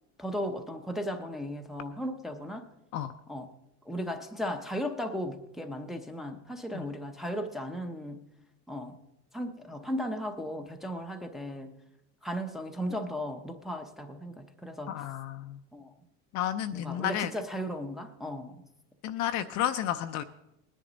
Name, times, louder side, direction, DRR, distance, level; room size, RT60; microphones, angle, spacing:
voice 1, 0.2-2.7 3.3-3.5 3.9-8.2 8.7-9.0 9.3-11.7 12.2-15.0 15.7-15.9 16.7-18.6, equal, ahead, 4 dB, 0.6 m, -36 dB
voice 2, 14.9-15.6 16.3-17.3 19.0-20.2, left 11 dB, 40° left, 8 dB, 0.5 m, -31 dB
19.5 x 10.0 x 3.9 m, 0.89 s
supercardioid pair, 135°, 45 cm